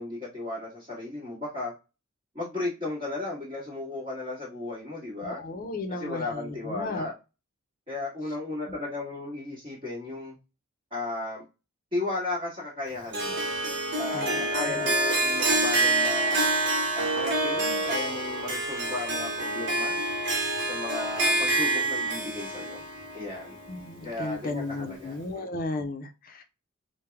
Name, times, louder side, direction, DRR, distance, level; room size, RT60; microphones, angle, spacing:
voice 1, 0.0-1.7 2.3-5.4 5.9-7.1 7.9-10.3 10.9-11.4 11.9-13.4 14.0-16.5 16.9-20.0 20.6-22.8 23.1-23.6 24.0-25.5, left 2 dB, 25° right, -10 dB, 1.6 m, -35 dB
voice 2, 5.2-7.1 14.1-14.4 23.7-26.4, left 2 dB, 45° left, 6 dB, 0.6 m, -34 dB
Harp, 13.1-24.4, right 2 dB, 60° right, 1.0 m, -27 dB
3.3 x 2.2 x 3.4 m, 0.27 s
head